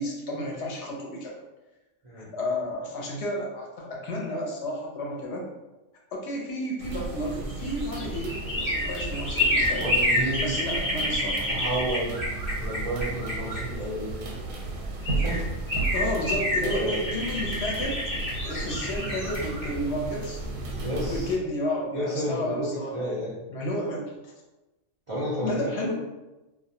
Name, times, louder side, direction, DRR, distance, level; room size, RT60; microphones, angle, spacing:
voice 1, 0.0-1.4 2.1-5.5 6.1-9.9 10.2-11.8 15.9-18.0 18.4-20.4 21.1-23.2 23.5-24.3 25.4-25.9, left 1 dB, 65° left, -2 dB, 0.8 m, -32 dB
sound 1, 6.8-21.4, right 2 dB, 85° right, 1.0 m, -34 dB
sound 2, 7.4-14.2 14.7-14.8 15.0-20.8 21.2-21.3, left 1 dB, 35° left, 0.8 m, -29 dB
voice 2, 9.8-10.5 11.5-12.2 12.6-14.3 15.1-15.4 16.6-17.0 20.8-21.3 21.9-22.7 22.9-23.3 25.1-25.9, right 1 dB, 55° right, -8 dB, 0.3 m, -31 dB
2.2 x 2.1 x 2.6 m, 1.1 s
omnidirectional pair, 1.3 m